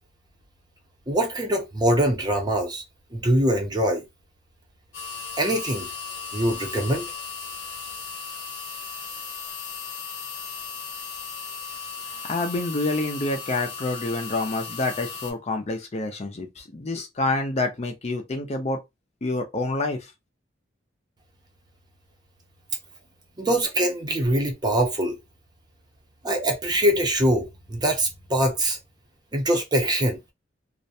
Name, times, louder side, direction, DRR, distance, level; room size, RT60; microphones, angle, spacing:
voice 1, 1.1-2.8 3.1-4.0 5.4-5.9 6.3-7.1 23.4-25.2 26.2-28.8 29.3-30.2, right 1 dB, 25° right, 0.6 m, -23 dB
sound 1, 4.9-15.3, left 5 dB, 90° left, 1.0 m, -36 dB
voice 2, 12.2-18.8 19.2-20.0, left 2 dB, 35° left, 0.5 m, -27 dB
2.4 x 2.1 x 2.6 m
head